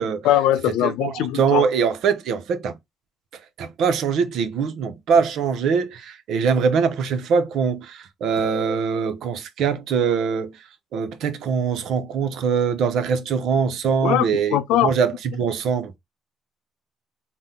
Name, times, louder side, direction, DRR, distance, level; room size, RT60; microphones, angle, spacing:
voice 1, 0.2-1.7 14.0-14.9, left 12 dB, 80° left, 0.5 m, -21 dB
voice 2, 0.8-2.8 3.6-10.6 10.9-16.0, right 6 dB, 70° right, 0.6 m, -23 dB
4.1 x 2.1 x 3.6 m
supercardioid pair, 70°, 0 cm